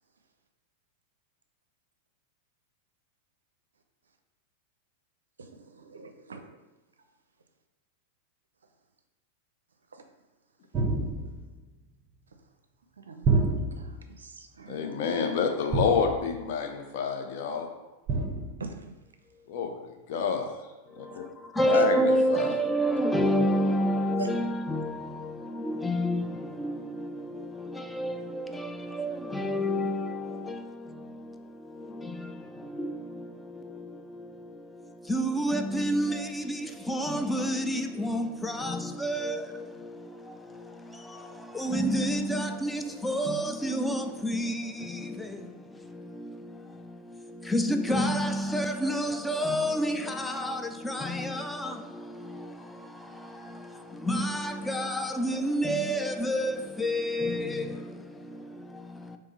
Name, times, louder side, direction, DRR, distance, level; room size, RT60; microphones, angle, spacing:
voice 1, 5.4-6.5 13.1-13.5 13.8-15.0 18.6-18.9 21.7-21.8 24.2-24.3, right 4 dB, 70° right, 6 dB, 0.4 m, -42 dB
sound 1, 10.7-11.6 13.2-14.1 15.7-16.4 18.1-18.7, right 3 dB, 25° right, 0.7 m, -28 dB
voice 2, 14.7-17.7 19.5-20.4 21.2-21.3 21.7-22.5, left 6 dB, 50° left, 3 dB, 0.6 m, -28 dB
voice 3, 21.0-59.2, equal, 5° left, 6 dB, 0.4 m, -30 dB
3.6 x 3.2 x 4.1 m, 1.1 s
figure-of-eight pair, 90°, 0 cm